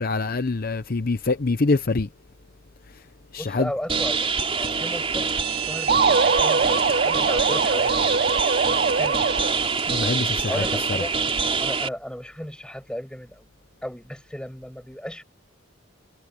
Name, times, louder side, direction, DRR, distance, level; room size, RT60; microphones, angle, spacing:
voice 1, 0.0-2.1 3.3-3.7 9.9-10.6, left 3 dB, 45° left, 0.7 m, -24 dB
voice 2, 3.4-5.3 5.6-8.0 8.9-9.3 10.5-11.1 11.6-13.5 13.8-15.2, equal, 5° left, 7.4 m, -35 dB
sound 1, 3.9-11.9, right 5 dB, 30° right, 4.0 m, -25 dB
sound 2, 5.9-9.8, right 5 dB, 45° right, 0.6 m, -22 dB
head